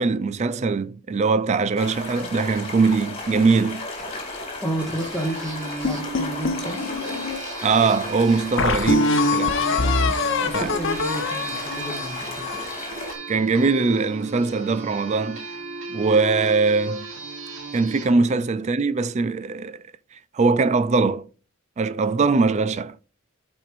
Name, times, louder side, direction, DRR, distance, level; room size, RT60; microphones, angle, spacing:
voice 1, 0.0-3.9 7.6-9.6 10.5-10.7 13.3-15.5 15.9-17.1 17.7-19.8 20.3-21.3 21.8-22.9, right 4 dB, 35° right, 0.4 m, -21 dB
sound 1, 1.7-13.1, left 2 dB, 30° left, 2.0 m, -35 dB
voice 2, 4.0-6.8 10.1-12.5 18.1-18.2, right 1 dB, ahead, 1.4 m, -32 dB
sound 2, 4.8-18.1, right 3 dB, 70° right, 1.9 m, -36 dB
sound 3, 5.8-7.4 8.0-8.1 8.6-12.8, left 3 dB, 65° left, 0.8 m, -24 dB
13.0 x 4.4 x 2.5 m
head